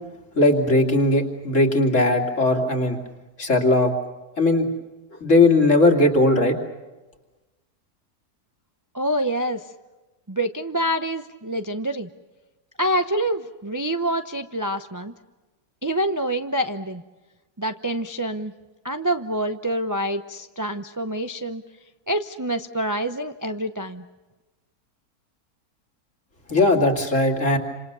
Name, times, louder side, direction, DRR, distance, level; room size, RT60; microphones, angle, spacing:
voice 1, 0.4-3.0 3.4-3.9 4.4-4.7 5.2-6.6 26.5-27.6, left 2 dB, 50° left, 3 dB, 3.0 m, -18 dB
voice 2, 8.9-9.7 10.3-12.1 12.8-15.1 15.8-17.0 17.6-18.5 18.8-21.6 22.1-24.0, right 1 dB, 20° right, 8 dB, 0.5 m, -26 dB
28.5 x 26.5 x 6.9 m, 1.2 s
omnidirectional pair, 1.6 m